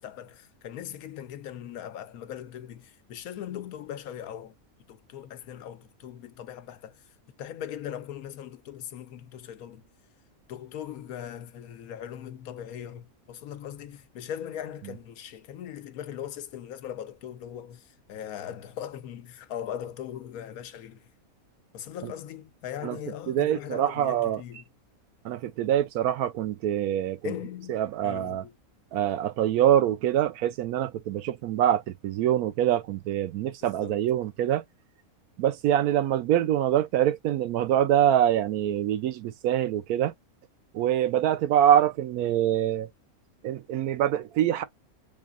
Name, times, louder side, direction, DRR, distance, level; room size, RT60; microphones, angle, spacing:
voice 1, 0.0-4.5 4.9-9.8 10.5-21.1 21.7-24.6 27.2-28.5 33.6-34.1, left 10 dB, 80° left, 1.1 m, -40 dB
voice 2, 23.3-24.4 25.2-27.3 27.7-28.4 28.9-34.6 35.4-40.1 40.7-42.9 43.4-44.6, right 11 dB, 85° right, 1.1 m, -25 dB
3.9 x 3.7 x 2.4 m
omnidirectional pair, 1.5 m